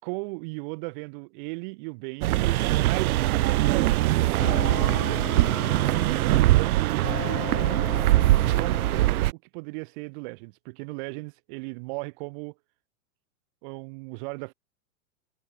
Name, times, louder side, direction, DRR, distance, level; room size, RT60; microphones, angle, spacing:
voice 1, 0.0-2.5 2.7-7.9 8.3-12.5 13.6-14.5, right 30 dB, 35° right, 5.1 m, -37 dB
sound 1, 2.2-9.3, right 16 dB, 90° right, 0.6 m, -22 dB
sound 2, 4.4-6.7 7.0-9.1, left 11 dB, 85° left, 3.7 m, -37 dB
supercardioid pair, 170°, 43 cm